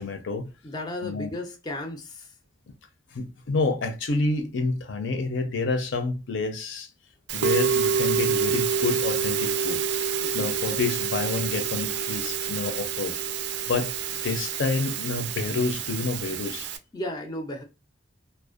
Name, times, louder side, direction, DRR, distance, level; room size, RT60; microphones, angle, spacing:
voice 1, 0.0-0.5 1.0-1.3 3.1-6.9 7.3-9.8 10.3-13.2 13.7-16.7, left 3 dB, 70° left, 0.5 m, -28 dB
voice 2, 0.6-2.3 10.2-10.5 14.2-14.4 16.9-17.6, left 1 dB, 20° left, 0.3 m, -35 dB
Musical instrument, 7.3-16.8, right 6 dB, 60° right, 0.3 m, -27 dB
2.5 x 2.1 x 2.4 m
head